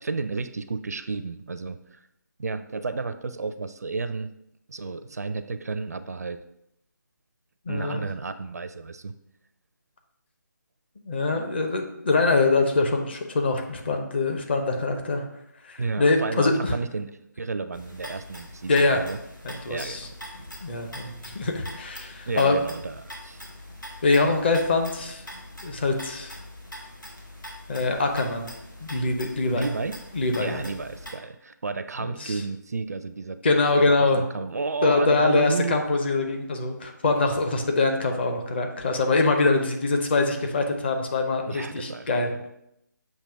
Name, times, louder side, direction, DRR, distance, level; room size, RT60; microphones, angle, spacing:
voice 1, 0.0-2.0 2.4-4.3 4.7-6.4 7.7-9.1 15.8-19.2 19.7-20.2 22.3-23.5 29.5-30.0 30.4-33.4 33.8-34.1 34.3-35.8 41.5-42.2, right 4 dB, 55° right, 11 dB, 0.4 m, -32 dB
voice 2, 7.7-8.1 11.0-15.2 15.6-16.7 18.7-19.0 19.4-20.1 20.6-22.6 24.0-25.2 25.6-26.3 27.7-28.5 28.8-29.7 30.1-30.6 32.0-32.3 33.4-34.2 34.8-42.3, left 3 dB, 30° left, 3 dB, 0.8 m, -24 dB
sound 1, 17.7-31.1, left 1 dB, 85° left, 2.0 m, -43 dB
6.7 x 2.9 x 5.7 m, 0.80 s
figure-of-eight pair, 155°, 10 cm